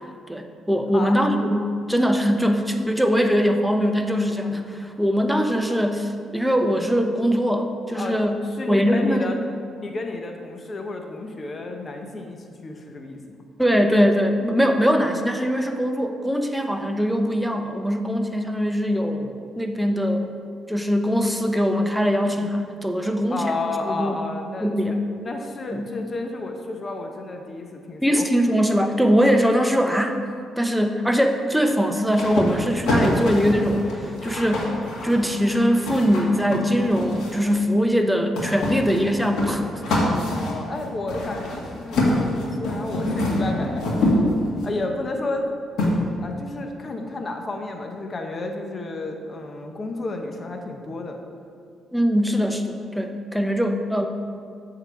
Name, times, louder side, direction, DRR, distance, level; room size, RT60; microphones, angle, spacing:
voice 1, 0.3-8.4 8.7-9.3 13.6-20.3 20.7-23.6 23.9-24.2 24.6-25.0 25.7-25.9 28.0-30.2 30.6-34.8 35.0-40.0 51.9-54.1, equal, ahead, 5 dB, 0.7 m, -22 dB
voice 2, 0.9-1.3 8.0-9.4 9.8-13.4 23.3-28.3 40.3-44.3 44.6-45.5 46.2-51.2, left 2 dB, 35° left, 3 dB, 0.9 m, -31 dB
sound 1, 32.1-37.5 38.4-44.7 45.8-45.9, left 1 dB, 75° left, 1.8 m, -25 dB
8.0 x 3.9 x 6.8 m, 2.3 s
cardioid pair, 90°, 0 cm